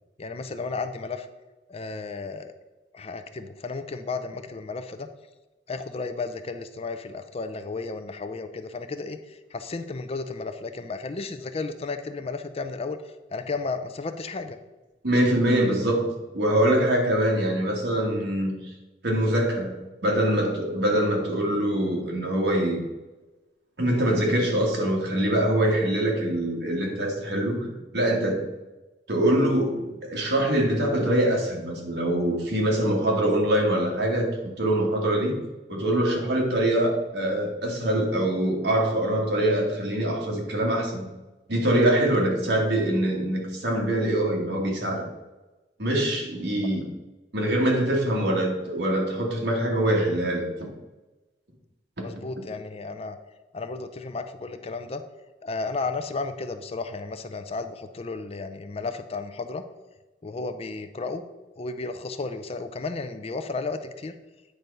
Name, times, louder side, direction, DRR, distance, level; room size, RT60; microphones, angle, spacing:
voice 1, 0.2-1.3 1.7-2.5 2.9-5.1 5.7-14.6 52.0-53.2 53.5-55.0 55.4-59.6 60.2-61.3 61.6-64.1, left 3 dB, 35° left, 9 dB, 0.4 m, -33 dB
voice 2, 15.0-18.7 19.0-19.7 20.0-22.8 23.8-28.4 29.1-34.3 34.6-35.4 35.7-41.1 41.5-45.0 45.8-46.8 47.3-50.4 52.0-52.1, right 1 dB, 65° right, -1 dB, 1.7 m, -24 dB
9.1 x 3.4 x 5.4 m, 1.1 s
head